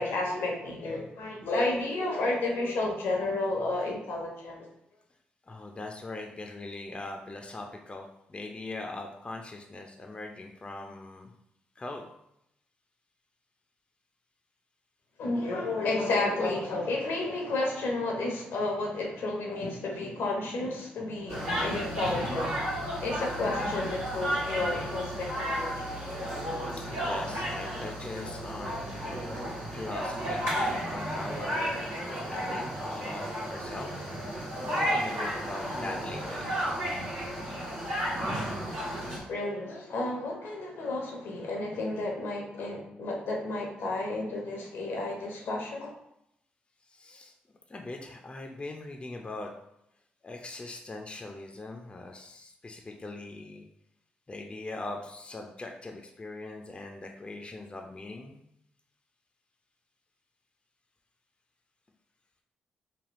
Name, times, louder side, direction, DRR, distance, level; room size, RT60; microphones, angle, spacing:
voice 1, 0.0-4.7 15.2-22.6 23.0-25.8 39.3-45.9, left 2 dB, 75° left, 0 dB, 0.7 m, -31 dB
voice 2, 5.5-11.3 11.8-12.1 26.7-28.9 29.7-36.5 46.9-47.3 47.7-49.5 50.2-53.6 54.3-58.4, left 2 dB, 25° left, 2 dB, 0.4 m, -41 dB
sound 1, 21.3-39.2, equal, 80° right, 1.2 m, -33 dB
3.4 x 2.2 x 2.5 m, 0.79 s
hypercardioid pair, 45°, 4 cm